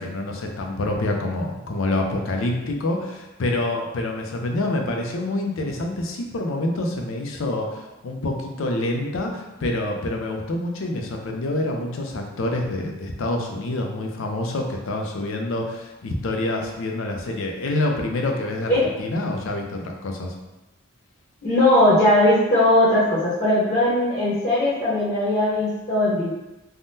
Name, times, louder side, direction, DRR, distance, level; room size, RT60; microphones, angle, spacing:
voice 1, 0.0-20.3, left 2 dB, 70° left, 2 dB, 0.4 m, -27 dB
voice 2, 21.4-26.3, left 1 dB, 40° left, -11 dB, 0.8 m, -19 dB
3.5 x 2.1 x 2.6 m, 1.0 s
head